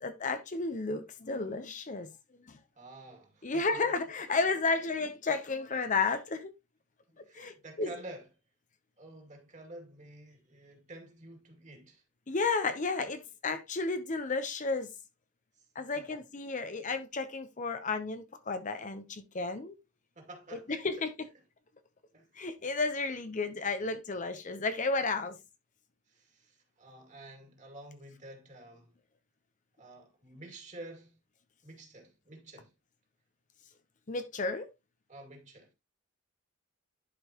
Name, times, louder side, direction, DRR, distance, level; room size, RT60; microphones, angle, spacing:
voice 1, 0.0-2.1 2.5-2.6 3.4-6.5 7.3-7.9 12.3-14.9 15.7-19.7 20.7-21.1 22.4-25.4 34.1-34.7, left 3 dB, 40° left, 0.7 m, -32 dB
voice 2, 2.8-3.8 4.3-4.4 4.8-4.9 7.1-8.3 9.0-12.0 15.5-15.7 15.9-16.2 16.7-16.8 20.2-20.8 22.1-22.3 26.1-28.9 29.8-31.2 31.6-32.7 35.1-35.7, right 2 dB, 35° right, 2.4 m, -50 dB
11.0 x 5.2 x 2.9 m
head